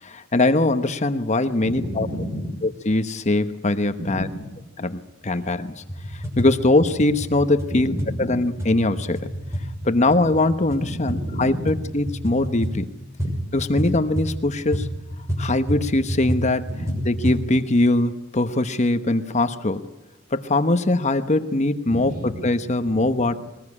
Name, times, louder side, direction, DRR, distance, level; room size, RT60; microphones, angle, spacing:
voice 1, 0.0-2.1 2.9-4.3 4.8-5.8 6.1-7.9 8.2-9.3 9.8-12.9 13.5-14.9 15.4-16.7 17.1-19.9 20.3-22.1 22.4-23.4, left 2 dB, 35° left, 10 dB, 1.0 m, -21 dB
voice 2, 1.6-2.5 4.0-4.5 7.7-8.4 10.8-11.7 13.2-13.3 16.7-17.0 21.8-22.5 22.9-23.0, equal, 45° right, 6 dB, 4.9 m, -31 dB
sound 1, 5.8-17.5, equal, 15° right, 6.5 m, -29 dB
22.5 x 20.0 x 9.8 m, 0.96 s
head